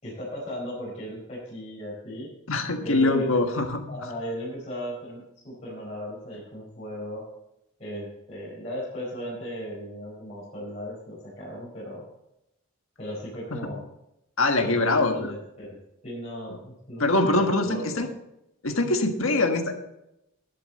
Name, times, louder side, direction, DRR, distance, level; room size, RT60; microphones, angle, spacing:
voice 1, 0.0-2.3 2.8-3.3 3.9-7.2 7.8-12.0 13.0-13.8 14.6-15.8 16.0-17.1 17.3-17.8, equal, 30° left, -8 dB, 5.0 m, -36 dB
voice 2, 2.5-3.8 13.5-13.6 14.4-15.3 17.0-18.1 18.6-19.7, left 2 dB, 75° left, 5 dB, 1.6 m, -23 dB
11.5 x 11.5 x 4.2 m, 0.85 s
head